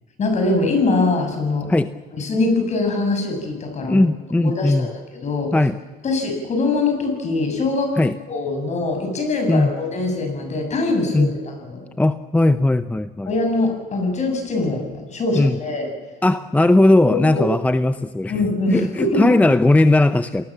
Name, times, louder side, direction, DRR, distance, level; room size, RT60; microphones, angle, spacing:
voice 1, 0.2-1.7 2.1-4.0 4.4-5.5 6.0-8.0 8.3-11.8 13.3-15.9 17.1-17.5 18.3-19.3, left 3 dB, 45° left, 4 dB, 7.5 m, -22 dB
voice 2, 3.9-4.9 5.5-5.8 8.0-8.2 9.5-9.7 11.1-11.3 12.0-13.3 15.4-15.6 16.2-18.3 18.7-20.4, left 2 dB, 10° left, 11 dB, 0.7 m, -17 dB
28.5 x 19.5 x 7.5 m, 1.4 s
cardioid pair, 110°, 17 cm